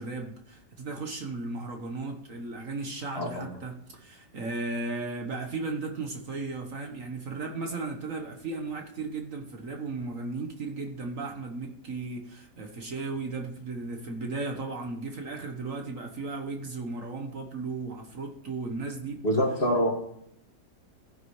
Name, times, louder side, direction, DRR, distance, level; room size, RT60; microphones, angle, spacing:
voice 1, 0.0-19.2, right 3 dB, 55° right, 3 dB, 1.6 m, -35 dB
voice 2, 3.2-3.5 19.2-19.9, equal, 35° left, 0 dB, 2.5 m, -25 dB
16.5 x 9.8 x 3.2 m, 0.70 s
omnidirectional pair, 1.8 m